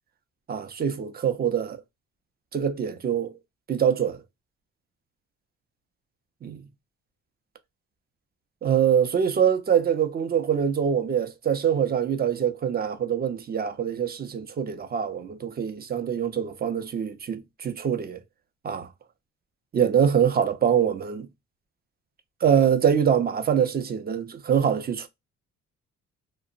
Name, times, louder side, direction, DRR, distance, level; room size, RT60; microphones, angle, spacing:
voice 1, 0.5-1.8 2.5-3.4 3.7-4.2 6.4-6.7 8.6-18.2 18.6-18.9 19.7-21.3 22.4-25.1, right 8 dB, 30° right, 0.5 m, -24 dB
2.8 x 2.0 x 2.4 m
cardioid pair, 90°, 30 cm